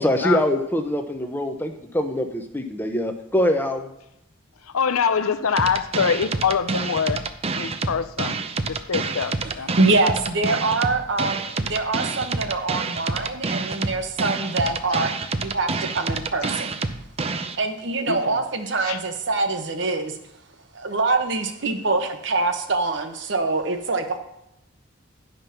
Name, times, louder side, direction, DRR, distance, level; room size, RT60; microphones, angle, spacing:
voice 1, 0.0-3.9, left 1 dB, 10° left, 0.7 m, -24 dB
voice 2, 4.7-7.2 7.5-8.4 8.9-9.7 18.1-18.2 18.9-19.0, left 6 dB, 90° left, 0.6 m, -24 dB
sound 1, 5.6-17.6, right 4 dB, 30° right, 0.5 m, -28 dB
voice 3, 9.7-15.1 15.4-16.7 17.6-20.2 20.7-24.2, right 3 dB, 55° right, 1.0 m, -24 dB
10.5 x 5.4 x 5.7 m
head